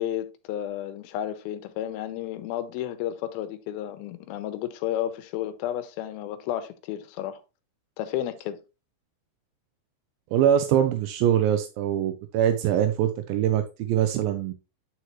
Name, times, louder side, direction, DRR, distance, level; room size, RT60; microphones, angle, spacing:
voice 1, 0.0-7.4 8.0-8.6, left 11 dB, 85° left, 2.7 m, -32 dB
voice 2, 10.3-14.5, right 10 dB, 85° right, 2.4 m, -23 dB
9.5 x 4.6 x 3.0 m
omnidirectional pair, 4.2 m